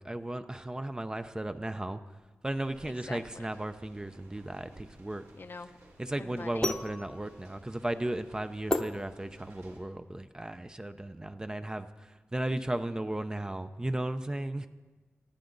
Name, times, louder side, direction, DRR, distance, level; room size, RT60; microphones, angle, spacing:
voice 1, 0.0-2.0 2.4-5.2 6.0-14.7, right 1 dB, 15° right, 9 dB, 0.6 m, -35 dB
sound 1, 2.6-9.8, right 1 dB, 85° right, 4.2 m, -58 dB
voice 2, 3.1-3.5 5.4-5.7 6.2-6.7, left 4 dB, 50° left, 9 dB, 0.7 m, -44 dB
sound 2, 4.6-9.8, left 1 dB, 15° left, 0.8 m, -36 dB
21.5 x 14.5 x 3.9 m, 1.3 s
wide cardioid pair, 125°, 5 cm